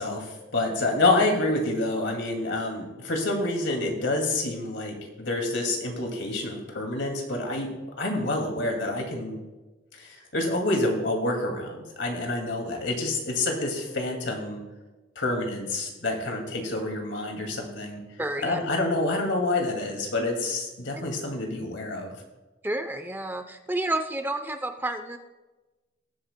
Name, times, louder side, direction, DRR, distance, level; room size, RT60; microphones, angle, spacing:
voice 1, 0.0-7.7 8.0-9.4 9.9-14.6 15.2-18.0 18.4-22.2, left 2 dB, 80° left, 2 dB, 2.2 m, -28 dB
voice 2, 18.2-18.6 22.6-25.2, right 1 dB, 10° right, 7 dB, 0.5 m, -30 dB
19.0 x 8.6 x 2.2 m, 1.1 s
head